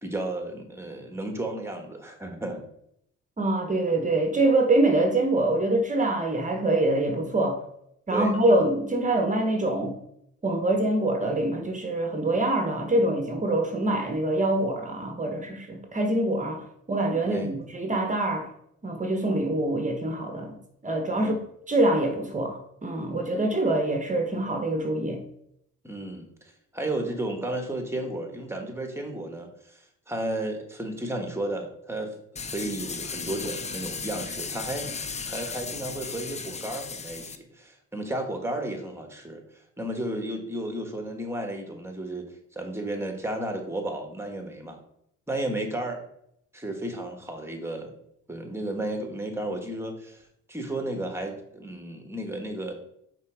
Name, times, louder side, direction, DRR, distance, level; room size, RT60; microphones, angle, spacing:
voice 1, 0.0-2.6 8.1-8.3 17.3-17.5 21.2-21.3 25.8-26.3 26.7-32.1 32.5-39.4 39.8-44.8 45.3-46.0 46.5-47.9 48.3-50.2 50.5-52.7, right 1 dB, 10° right, 1.4 m, -33 dB
voice 2, 3.4-7.6 8.1-10.0 10.4-18.5 18.8-20.6 20.8-21.4 21.7-25.2, right 2 dB, 25° right, 1.0 m, -25 dB
sound 1, 32.4-37.4, left 5 dB, 25° left, 0.5 m, -35 dB
5.6 x 3.7 x 4.9 m
cardioid pair, 90°, 30 cm